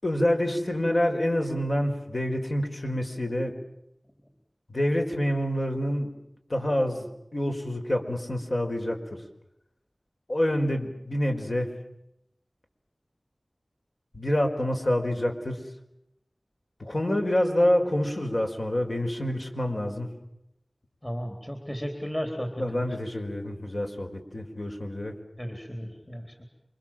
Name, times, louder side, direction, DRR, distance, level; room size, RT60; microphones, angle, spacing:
voice 1, 0.0-3.6 4.7-6.1 6.5-9.2 10.3-11.7 14.1-15.6 16.8-20.1 22.6-25.2, left 1 dB, 50° left, 3 dB, 5.0 m, -27 dB
voice 2, 21.0-22.8 25.4-26.5, equal, 20° left, 4 dB, 3.9 m, -34 dB
28.0 x 25.5 x 7.6 m, 0.81 s
wide cardioid pair, 60°, 0 cm